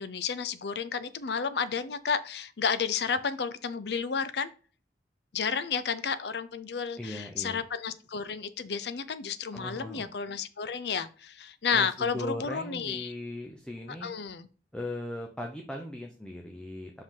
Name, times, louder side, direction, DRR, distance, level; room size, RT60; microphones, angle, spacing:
voice 1, 0.0-4.5 5.3-13.1 14.0-14.5, left 6 dB, 65° left, 14 dB, 0.5 m, -31 dB
voice 2, 7.0-7.6 9.5-10.1 11.7-14.1 14.7-16.9, left 1 dB, 5° left, 1 dB, 0.7 m, -38 dB
5.7 x 5.1 x 3.7 m, 0.38 s
head